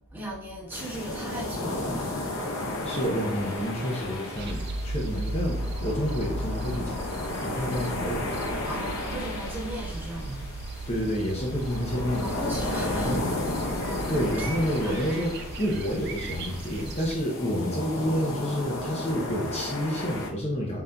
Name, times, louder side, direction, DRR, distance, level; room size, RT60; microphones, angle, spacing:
voice 1, 0.1-2.3 2.7-2.8 8.6-10.6 12.2-13.3 14.4-14.5 14.8-15.2, right 1 dB, 10° right, -6 dB, 1.1 m, -37 dB
sound 1, 0.7-20.3, left 2 dB, 80° left, 0.7 m, -34 dB
voice 2, 2.8-8.3 10.9-12.3 12.9-13.3 14.1-20.8, equal, 30° left, -3 dB, 0.6 m, -29 dB
sound 2, 4.4-17.2, right 1 dB, 50° right, 0.4 m, -36 dB
4.1 x 3.7 x 2.2 m, 0.71 s
head